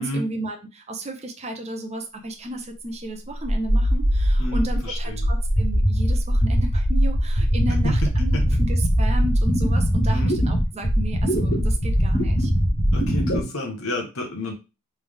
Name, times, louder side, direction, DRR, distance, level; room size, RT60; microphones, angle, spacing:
voice 1, 0.0-12.5, right 1 dB, 30° right, 4 dB, 0.7 m, -33 dB
sound 1, 3.4-13.4, equal, 45° left, 1.5 m, -21 dB
voice 2, 4.4-5.2 7.8-7.9 8.3-8.4 10.1-10.3 12.9-14.5, left 1 dB, 70° left, 1 dB, 1.1 m, -30 dB
3.4 x 3.3 x 3.5 m, 0.28 s
head